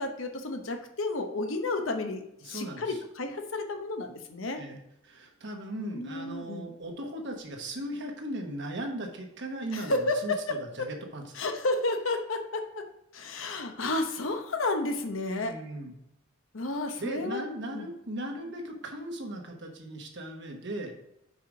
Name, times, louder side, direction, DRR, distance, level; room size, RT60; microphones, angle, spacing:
voice 1, 0.0-4.6 5.8-6.7 9.7-10.9 11.3-12.8 13.1-15.6 16.5-17.4 17.7-17.9, left 2 dB, 85° left, 5 dB, 0.9 m, -31 dB
voice 2, 2.4-3.0 4.6-11.2 15.4-15.9 17.0-20.9, right 1 dB, 60° right, 2 dB, 1.2 m, -38 dB
5.5 x 4.7 x 5.1 m, 0.81 s
head